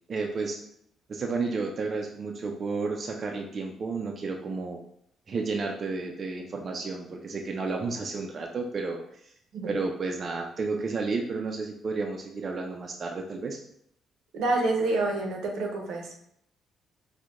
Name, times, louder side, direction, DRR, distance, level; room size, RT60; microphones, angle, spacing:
voice 1, 0.1-0.6 1.1-4.8 5.3-9.2 9.7-13.6, right 4 dB, 45° right, 1 dB, 0.4 m, -32 dB
voice 2, 14.3-16.4, right 2 dB, 80° right, 1 dB, 0.7 m, -28 dB
4.4 x 2.1 x 2.5 m, 0.70 s
cardioid pair, 90°, 0 cm